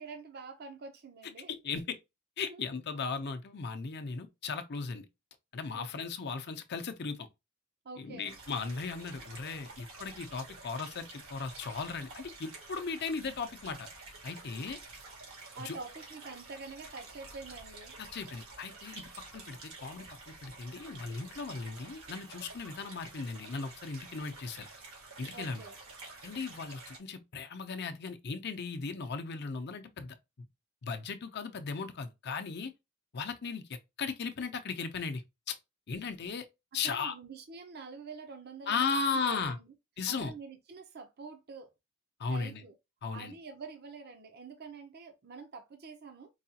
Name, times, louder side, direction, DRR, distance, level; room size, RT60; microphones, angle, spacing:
voice 1, 0.0-1.5 2.5-2.6 5.7-6.1 7.8-8.4 15.5-18.0 25.3-25.8 36.7-39.6 40.1-41.7 42.3-42.7 43.1-46.3, right 4 dB, 50° right, 0.6 m, -46 dB
voice 2, 1.5-2.0 2.4-5.1 5.5-7.3 8.0-13.9 14.2-14.8 15.6-15.7 18.0-19.1 19.3-24.7 25.2-25.6 26.2-30.2 30.8-32.7 33.1-33.6 34.0-35.2 35.5-35.6 35.9-36.5 36.7-37.1 38.7-39.6 40.0-40.3 42.2-42.6 43.0-43.3, left 5 dB, 50° left, 0.6 m, -36 dB
sound 1, 8.3-27.0, right 3 dB, 85° right, 1.7 m, -50 dB
4.7 x 2.3 x 2.7 m
head